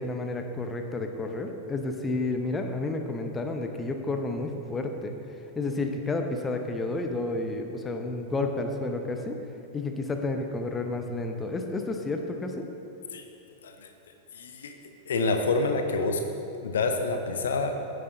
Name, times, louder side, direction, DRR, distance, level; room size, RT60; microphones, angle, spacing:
voice 1, 0.0-5.1 5.6-9.4 9.7-12.7, left 2 dB, 15° left, 5 dB, 0.8 m, -31 dB
voice 2, 14.3-14.7 15.1-16.2 16.6-17.8, left 3 dB, 65° left, 6 dB, 0.7 m, -27 dB
16.0 x 7.8 x 2.7 m, 2.8 s
figure-of-eight pair, 90°, 0 cm